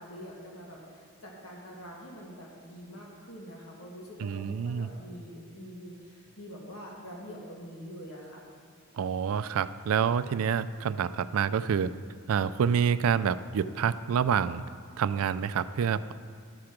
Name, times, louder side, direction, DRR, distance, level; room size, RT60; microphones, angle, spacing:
voice 1, 0.0-8.4, equal, 75° left, -2 dB, 1.7 m, -45 dB
voice 2, 4.2-4.9 8.9-11.9 12.3-14.6 15.0-16.1, right 7 dB, 75° right, 15 dB, 0.3 m, -27 dB
12.5 x 4.9 x 5.9 m, 2.2 s
head